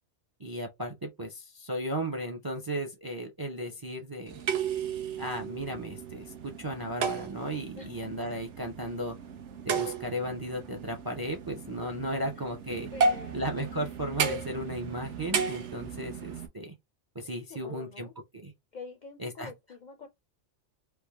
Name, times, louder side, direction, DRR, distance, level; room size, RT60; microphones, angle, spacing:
voice 1, 0.4-4.4 5.2-9.2 9.7-12.9 13.3-16.7 17.1-18.5 19.2-19.5, right 1 dB, 30° right, 0.4 m, -35 dB
sound 1, 4.3-16.5, right 5 dB, 75° right, 1.0 m, -34 dB
voice 2, 12.9-13.4 17.5-18.1 18.7-20.1, left 4 dB, 60° left, 0.5 m, -46 dB
3.3 x 2.1 x 3.2 m
omnidirectional pair, 1.2 m